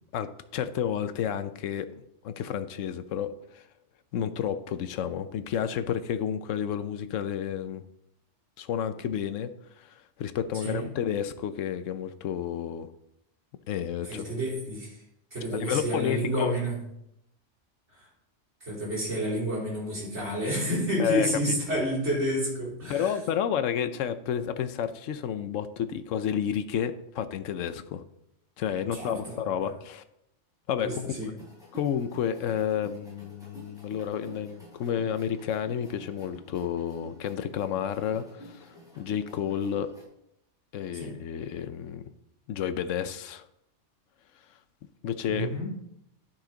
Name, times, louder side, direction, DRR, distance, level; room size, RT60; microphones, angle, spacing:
voice 1, 0.1-3.7 4.1-7.8 8.6-9.5 9.8-12.9 13.7-14.3 15.5-16.5 21.0-21.8 22.9-28.0 28.6-30.0 30.7-30.9 31.7-39.9 40.7-42.0 42.5-43.4 45.0-45.5, left 8 dB, 90° left, 11 dB, 1.0 m, -31 dB
voice 2, 14.0-15.0 15.3-16.8 17.9-18.1 18.6-23.2 28.9-29.4 30.8-31.3 40.9-41.1 45.3-45.8, equal, 65° right, -5 dB, 3.9 m, -30 dB
sound 1, 31.4-40.0, equal, 5° right, 3.5 m, -49 dB
11.5 x 5.9 x 3.9 m, 0.80 s
omnidirectional pair, 1.3 m